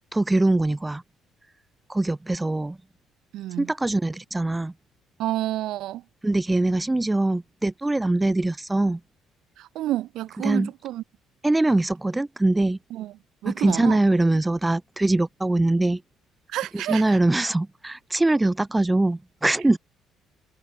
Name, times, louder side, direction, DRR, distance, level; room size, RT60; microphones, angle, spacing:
voice 1, 0.1-1.0 1.9-2.8 3.6-4.7 6.2-9.0 10.4-10.7 11.4-12.8 13.5-16.0 16.9-19.8, right 2 dB, 10° right, 2.8 m, -22 dB
voice 2, 3.3-3.7 5.2-6.0 9.6-11.0 12.9-13.1 13.4-14.0 16.5-17.2, right 14 dB, 75° right, 6.7 m, -29 dB
cardioid pair, 100°, 0 cm